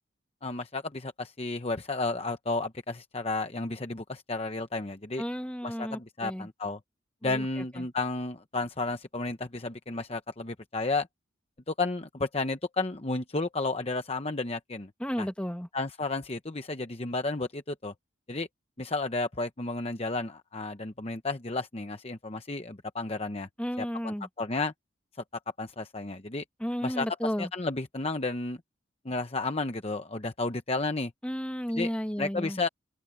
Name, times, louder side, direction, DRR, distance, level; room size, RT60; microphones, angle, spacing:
voice 1, 0.4-5.2 5.6-6.8 7.2-11.1 11.7-14.9 15.2-15.3 15.7-17.9 18.3-18.5 18.8-23.5 23.8-24.7 25.6-26.4 26.8-28.6 29.0-31.1 31.8-31.9 32.2-32.7, left 3 dB, 30° left, 0.9 m, -32 dB
voice 2, 5.2-6.5 7.2-7.9 15.0-15.7 23.6-24.3 26.6-27.5 31.2-32.6, equal, 5° left, 1.8 m, -33 dB
open air
head